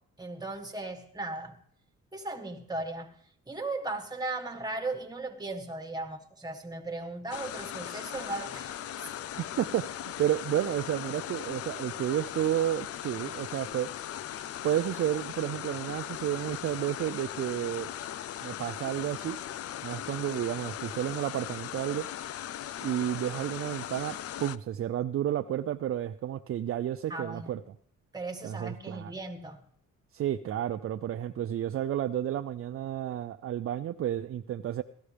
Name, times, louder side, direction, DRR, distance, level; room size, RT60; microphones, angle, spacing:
voice 1, 0.2-1.6 2.1-3.1 3.5-8.8 27.1-27.5 28.1-29.6, right 2 dB, 15° right, 1.6 m, -37 dB
sound 1, 7.3-24.6, left 11 dB, 50° left, 0.5 m, -39 dB
voice 2, 9.4-13.9 14.6-17.9 18.4-19.4 19.8-22.1 22.8-27.6 28.4-29.2 30.1-34.8, right 11 dB, 50° right, 0.5 m, -31 dB
17.0 x 12.5 x 3.3 m
cardioid pair, 90°, 30 cm